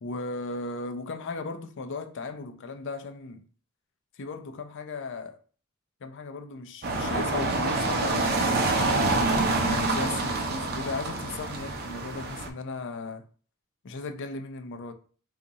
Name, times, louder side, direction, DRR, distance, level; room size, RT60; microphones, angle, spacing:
voice 1, 0.0-3.4 4.1-5.4 6.0-8.7 9.6-13.3 13.8-14.9, left 3 dB, 55° left, 0.5 m, -36 dB
sound 1, 6.8-12.5, right 2 dB, 45° right, 0.5 m, -26 dB
2.7 x 2.4 x 4.0 m
head